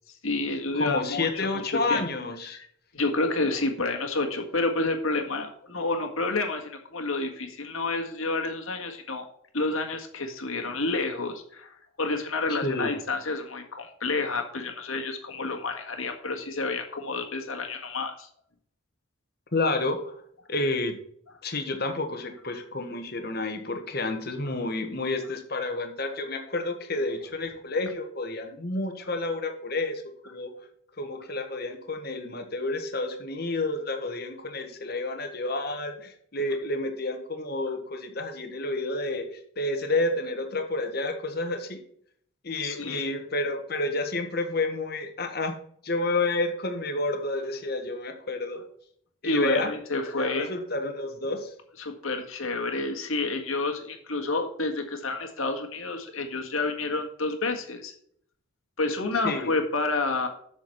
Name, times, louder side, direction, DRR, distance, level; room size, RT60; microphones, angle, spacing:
voice 1, 0.2-2.0 2.9-9.3 9.5-18.3 42.6-43.1 49.2-50.5 51.8-57.9 58.8-60.3, left 3 dB, 80° left, 4 dB, 1.8 m, -29 dB
voice 2, 0.7-2.6 12.5-12.9 19.5-20.1 20.5-21.0 21.4-30.5 31.0-41.8 42.4-45.6 45.8-48.6 49.2-49.7 49.9-51.5 59.2-59.5, left 2 dB, 50° left, 6 dB, 1.4 m, -30 dB
7.9 x 6.4 x 5.8 m, 0.64 s
head